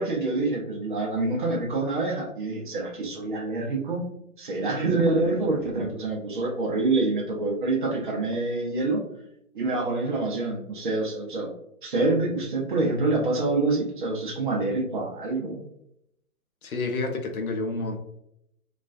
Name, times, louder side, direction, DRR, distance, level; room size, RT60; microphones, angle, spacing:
voice 1, 0.0-4.1 4.4-9.1 9.5-11.5 11.8-15.6, right 2 dB, 35° right, 0 dB, 0.5 m, -26 dB
voice 2, 16.6-18.0, left 3 dB, 75° left, 4 dB, 0.6 m, -29 dB
2.3 x 2.3 x 2.4 m, 0.77 s
figure-of-eight pair, 125°, 43 cm